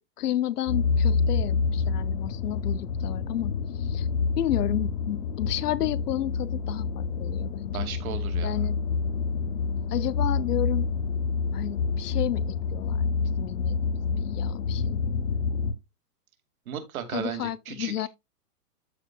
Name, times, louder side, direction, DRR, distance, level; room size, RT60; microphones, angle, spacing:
voice 1, 0.2-4.1 4.4-7.9 8.4-8.8 9.9-10.9 11.5-13.0 13.4-15.0 17.1-18.1, left 12 dB, 80° left, 0.8 m, -31 dB
sound 1, 0.7-15.7, left 5 dB, 55° left, 1.3 m, -28 dB
voice 2, 7.7-8.7 16.7-18.1, right 9 dB, 65° right, 2.5 m, -35 dB
13.5 x 4.6 x 2.3 m
hypercardioid pair, 135°, 46 cm